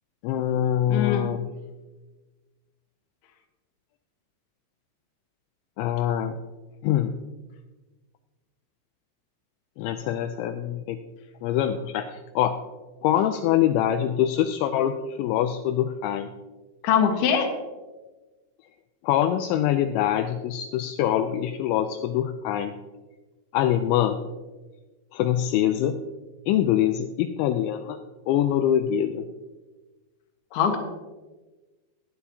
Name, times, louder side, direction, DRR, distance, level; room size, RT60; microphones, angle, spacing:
voice 1, 0.2-1.5 5.8-6.4 6.8-7.2 9.8-11.0 11.4-12.6 13.0-16.3 19.0-22.7 23.5-24.2 25.1-26.0 26.5-28.0 28.3-29.2, left 11 dB, 85° left, 7 dB, 2.8 m, -24 dB
voice 2, 0.9-1.3 16.8-17.5 30.5-30.8, left 7 dB, 65° left, 4 dB, 2.9 m, -22 dB
15.5 x 10.0 x 2.8 m, 1.2 s
omnidirectional pair, 5.4 m